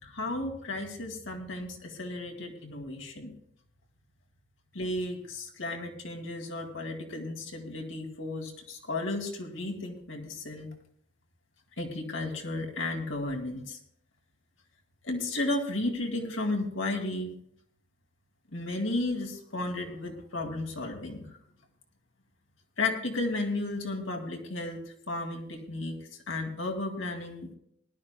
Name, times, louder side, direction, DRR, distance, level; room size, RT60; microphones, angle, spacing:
voice 1, 0.0-3.3 4.7-10.7 11.8-13.8 15.0-17.3 18.5-21.3 22.8-24.8 25.1-27.5, left 2 dB, 70° left, 3 dB, 2.4 m, -33 dB
20.0 x 12.0 x 2.2 m, 0.68 s
head